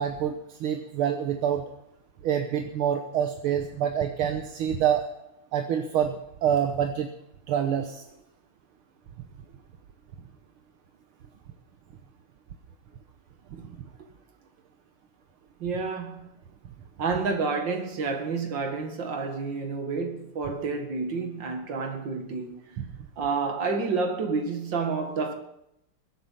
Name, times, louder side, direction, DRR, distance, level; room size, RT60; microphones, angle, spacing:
voice 1, 0.0-1.6 2.2-5.1 5.5-7.1 7.5-8.0 22.8-23.1, right 9 dB, 75° right, 1.9 m, -27 dB
voice 2, 15.6-16.4 17.0-22.8 23.2-25.3, right 4 dB, 60° right, 2.4 m, -29 dB
22.0 x 8.8 x 5.6 m
omnidirectional pair, 2.4 m